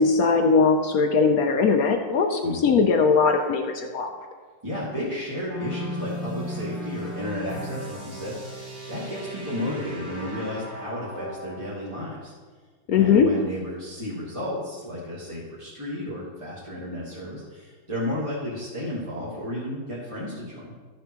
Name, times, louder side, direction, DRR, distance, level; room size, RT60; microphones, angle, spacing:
voice 1, 0.0-4.1 12.9-13.3, left 5 dB, 70° left, 4 dB, 0.8 m, -20 dB
voice 2, 4.6-12.3 12.9-20.7, left 1 dB, 15° right, -8 dB, 1.6 m, -33 dB
sound 1, 5.5-11.7, equal, 80° right, 4.1 m, -36 dB
13.0 x 7.0 x 3.0 m, 1.5 s
omnidirectional pair, 2.2 m